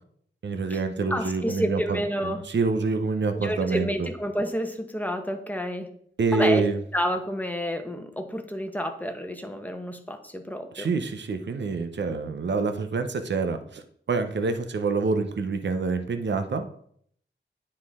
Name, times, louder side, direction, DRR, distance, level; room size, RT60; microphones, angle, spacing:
voice 1, 0.4-4.1 6.2-6.8 10.7-16.7, right 4 dB, 65° right, 8 dB, 0.7 m, -27 dB
voice 2, 1.1-2.4 3.4-5.9 6.3-6.7 6.9-10.9, equal, 10° left, 6 dB, 1.0 m, -29 dB
9.5 x 4.3 x 3.6 m, 0.62 s
wide cardioid pair, 65°, 19 cm